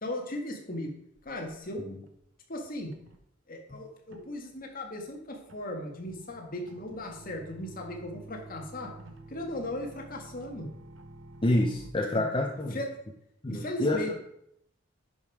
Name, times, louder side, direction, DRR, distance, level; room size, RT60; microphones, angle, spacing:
voice 1, 0.0-0.9 1.2-1.8 2.5-2.9 3.5-8.9 9.3-10.7 12.7-12.9 13.5-14.1, left 1 dB, 45° left, 2 dB, 1.8 m, -37 dB
sound 1, 1.2-1.7 2.1-2.4 2.6-3.2 4.1-11.9, right 2 dB, 70° right, 1.0 m, -50 dB
voice 2, 11.4-12.8 13.4-14.1, left 1 dB, 25° left, 2 dB, 0.7 m, -28 dB
10.5 x 5.4 x 4.8 m, 0.75 s
head